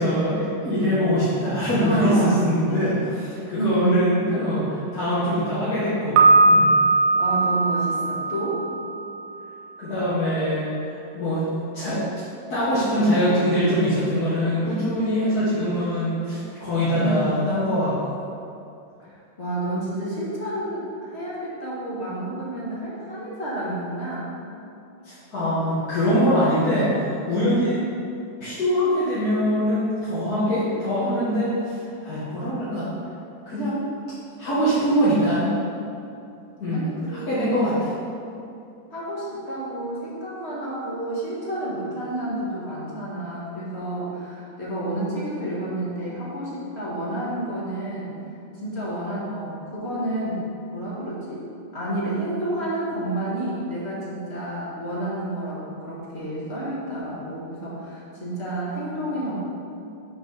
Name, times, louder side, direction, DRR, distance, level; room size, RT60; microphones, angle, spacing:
voice 1, 0.0-2.9 3.5-6.2 6.4-6.7 9.8-11.5 11.7-12.0 12.5-18.0 25.0-27.8 28.4-32.9 33.5-33.8 34.4-35.5 36.6-37.7, equal, 50° left, -12 dB, 1.9 m, -23 dB
voice 2, 1.8-2.3 2.7-3.0 3.6-3.9 7.1-8.7 17.0-17.3 19.0-24.3 36.7-37.6 38.9-48.1 48.5-51.5 51.7-59.3, right 1 dB, 35° left, -7 dB, 1.8 m, -30 dB
Piano, 6.2-9.1, right 3 dB, 90° right, 1.5 m, -19 dB
6.8 x 4.6 x 5.6 m, 2.6 s
omnidirectional pair, 2.2 m